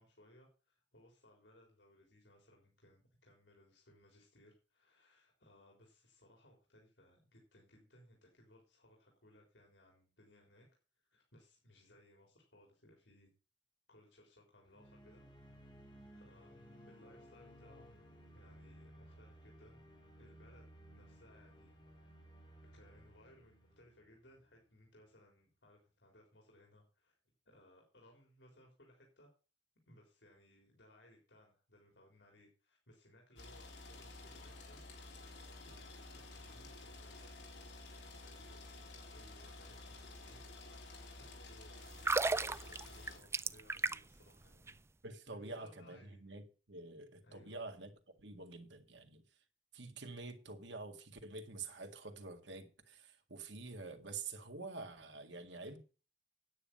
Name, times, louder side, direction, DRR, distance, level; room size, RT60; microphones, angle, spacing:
voice 1, 0.0-10.7 11.0-13.3 13.9-15.2 16.1-18.0 18.3-19.8 20.2-21.7 22.0-22.1 22.6-27.2 27.5-29.3 29.9-34.8 35.1-37.5 38.2-44.8 45.3-46.2 47.2-47.6 55.6-55.7, left 1 dB, 85° left, 3.7 m, -64 dB
sound 1, 14.7-24.7, equal, 25° left, 3.8 m, -58 dB
sound 2, 33.4-43.2, left 2 dB, 70° left, 3.5 m, -52 dB
sound 3, 41.9-44.2 44.5-44.7, right 3 dB, 15° right, 0.4 m, -34 dB
voice 2, 45.0-46.4 46.7-47.9 48.2-49.2 49.7-55.8, right 3 dB, 85° right, 1.9 m, -47 dB
9.8 x 9.1 x 5.3 m
head